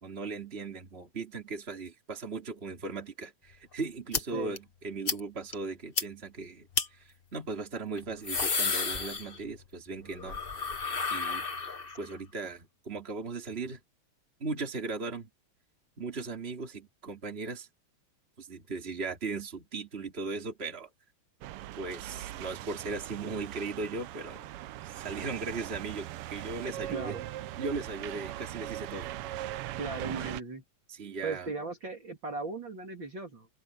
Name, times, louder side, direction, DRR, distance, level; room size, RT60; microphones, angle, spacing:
voice 1, 0.0-10.4 11.1-11.4 12.0-13.8 14.4-15.3 16.0-17.7 18.4-20.9 21.8-24.5 24.8-27.2 27.6-29.1 30.9-31.5, right 3 dB, 20° right, 3.2 m, -38 dB
sound 1, 4.1-4.2 4.6-4.7 5.1-5.2 5.5-5.6 6.0-6.1 6.7-6.9 8.0-9.6 9.9-12.1, left 4 dB, 80° left, 0.5 m, -31 dB
sound 2, 21.4-30.4, right 14 dB, 90° right, 1.2 m, -40 dB
voice 2, 26.9-27.2 29.8-30.6 31.2-33.5, right 3 dB, 40° right, 3.2 m, -37 dB
omnidirectional pair, 3.3 m